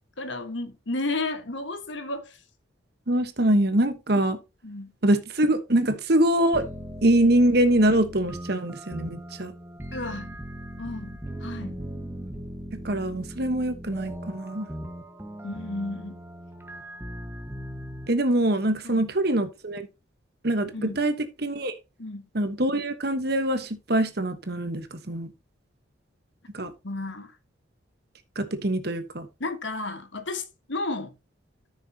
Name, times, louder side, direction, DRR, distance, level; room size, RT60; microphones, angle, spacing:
voice 1, 0.2-2.4 4.6-4.9 9.9-10.3 10.8-11.8 15.4-16.2 18.8-19.1 20.7-21.0 22.0-22.3 26.8-27.3 29.4-31.1, left 2 dB, 70° left, 1.5 m, -33 dB
voice 2, 3.1-4.4 5.0-6.6 7.0-9.5 12.7-14.7 18.1-19.9 20.4-21.1 21.4-21.7 22.3-25.3 26.5-26.7 28.4-29.3, right 1 dB, 50° right, 1.2 m, -24 dB
sound 1, 6.5-18.1, right 1 dB, 10° right, 1.3 m, -39 dB
13.5 x 6.5 x 2.9 m
head